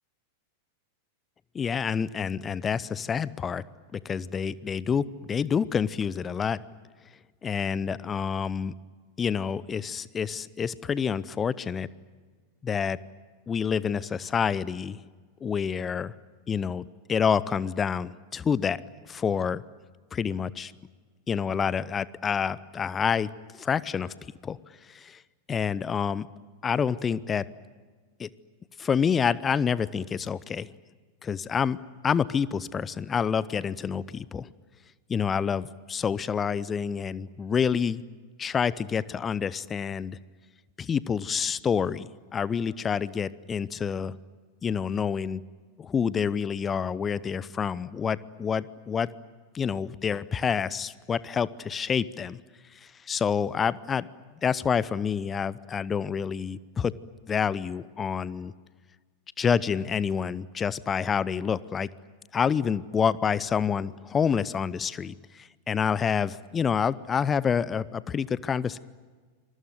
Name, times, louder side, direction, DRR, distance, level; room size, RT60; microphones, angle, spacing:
voice 1, 1.5-3.6 3.9-6.6 7.4-8.7 9.2-11.9 12.6-13.0 13.5-15.0 15.4-16.1 16.5-18.8 19.1-19.6 20.1-20.7 21.3-23.3 23.6-24.1 24.4-24.6 24.9-25.2 25.5-26.3 26.6-27.5 28.2-28.3 28.8-30.7 31.2-31.8 32.0-34.5 35.1-38.0 38.4-40.2 40.8-44.2 44.6-45.4 45.8-49.1 49.5-52.4 52.7-54.1 54.4-56.9 57.3-58.5 59.4-61.9 62.3-68.8, left 7 dB, 20° left, 20 dB, 0.7 m, -28 dB
27.0 x 21.0 x 9.3 m, 1.5 s
figure-of-eight pair, 90°, 0 cm